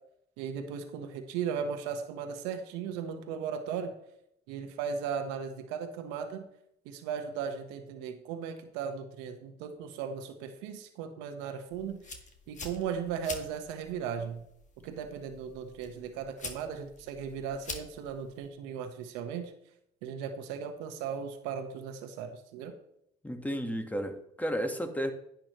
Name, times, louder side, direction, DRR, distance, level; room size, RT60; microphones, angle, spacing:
voice 1, 0.4-3.9 4.5-6.4 6.8-12.0 12.5-14.4 14.8-19.5 20.0-22.7, right 7 dB, 85° right, 6 dB, 1.3 m, -37 dB
sound 1, 11.7-18.5, left 4 dB, 40° left, 2.0 m, -46 dB
voice 2, 23.2-25.1, equal, 10° left, 5 dB, 1.6 m, -33 dB
10.5 x 9.4 x 3.2 m, 0.76 s
supercardioid pair, 75°, 18 cm